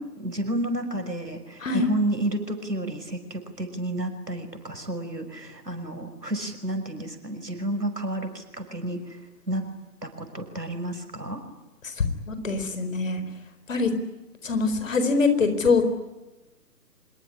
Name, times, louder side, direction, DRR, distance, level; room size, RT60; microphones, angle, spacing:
voice 1, 0.2-9.2 9.5-9.6 10.0-11.4, right 1 dB, 85° right, 7 dB, 6.0 m, -31 dB
voice 2, 12.3-13.2 13.7-13.9 14.4-15.8, left 4 dB, 50° left, 9 dB, 4.5 m, -23 dB
25.5 x 22.5 x 9.8 m, 1.1 s
figure-of-eight pair, 135°, 48 cm